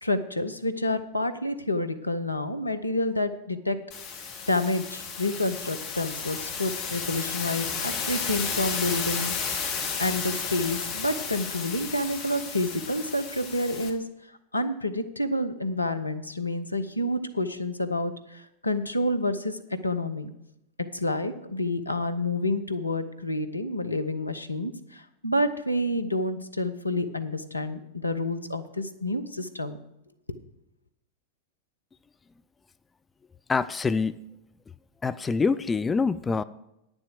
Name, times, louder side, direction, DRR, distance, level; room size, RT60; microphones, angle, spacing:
voice 1, 0.0-3.8 4.5-9.3 10.0-14.0 14.5-20.3 20.9-29.8, left 1 dB, 85° left, 9 dB, 0.8 m, -29 dB
sound 1, 3.9-13.9, left 5 dB, 35° left, 1.7 m, -33 dB
voice 2, 33.5-34.2 35.0-36.4, left 4 dB, 15° left, 14 dB, 0.3 m, -25 dB
10.0 x 7.2 x 6.8 m, 0.85 s
figure-of-eight pair, 90°, 0 cm